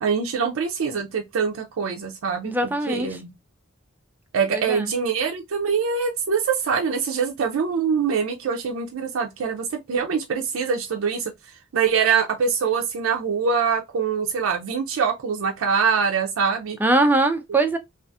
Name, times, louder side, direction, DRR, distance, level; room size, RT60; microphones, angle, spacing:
voice 1, 0.0-2.5 2.9-3.3 4.3-11.3 11.7-16.8, right 6 dB, 80° right, 0.4 m, -24 dB
voice 2, 2.4-3.2 4.5-4.9 16.8-17.8, right 2 dB, 10° right, 0.3 m, -21 dB
2.6 x 2.4 x 2.2 m
head